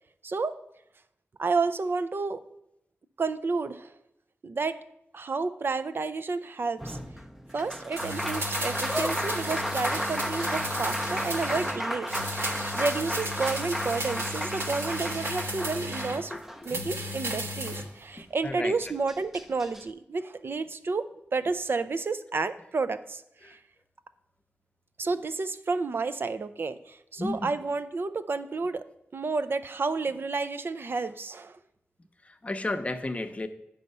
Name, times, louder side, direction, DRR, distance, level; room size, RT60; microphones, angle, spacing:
voice 1, 0.2-0.6 1.4-2.4 3.2-3.9 4.4-4.8 5.1-7.0 7.5-12.1 12.4-16.3 16.6-23.6 25.0-28.8 29.1-31.6, right 4 dB, 55° right, 13 dB, 0.4 m, -31 dB
Applause, 6.8-17.1 18.4-18.5 18.8-19.8, equal, 5° right, 0.6 m, -33 dB
sound 1, 8.0-11.8 12.1-16.2 16.6-17.9 18.2-18.3, equal, 75° right, 1.4 m, -34 dB
voice 2, 16.3-17.1 18.4-18.7 23.4-23.6 27.2-27.5 32.2-33.5, left 2 dB, 30° left, 8 dB, 0.7 m, -33 dB
8.3 x 5.6 x 5.4 m, 0.79 s
wide cardioid pair, 95°, 4 cm